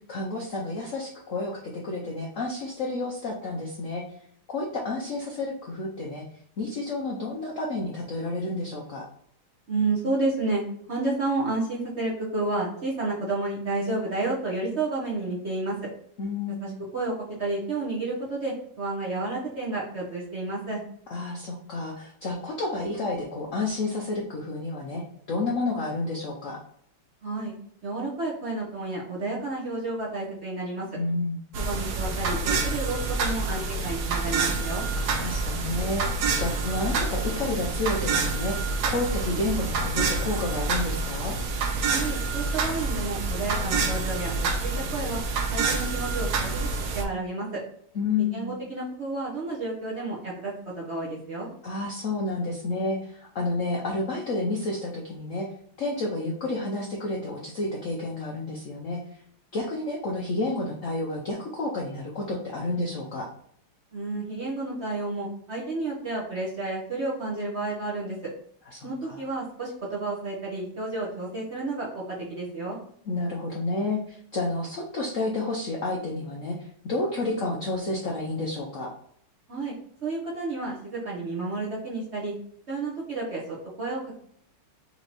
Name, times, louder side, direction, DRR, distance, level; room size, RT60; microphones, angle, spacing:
voice 1, 0.1-4.0 4.5-6.2 6.6-9.0 16.2-16.8 21.1-25.0 25.3-26.6 30.9-31.4 34.9-38.5 38.9-41.4 47.9-48.6 51.6-55.5 55.8-59.0 59.5-63.3 68.7-69.2 73.1-78.9, left 2 dB, 90° left, -2 dB, 0.6 m, -30 dB
voice 2, 9.7-10.6 10.9-15.7 16.6-17.1 17.4-20.8 27.2-27.5 27.8-30.9 31.5-34.8 41.9-45.2 45.5-47.6 48.2-51.5 63.9-68.2 68.8-72.8 79.5-79.7 80.0-82.3 82.7-84.1, right 2 dB, 40° right, -4 dB, 1.0 m, -31 dB
sound 1, 31.5-47.0, right 3 dB, 70° right, 0.9 m, -27 dB
4.3 x 3.0 x 4.0 m, 0.63 s
omnidirectional pair, 2.4 m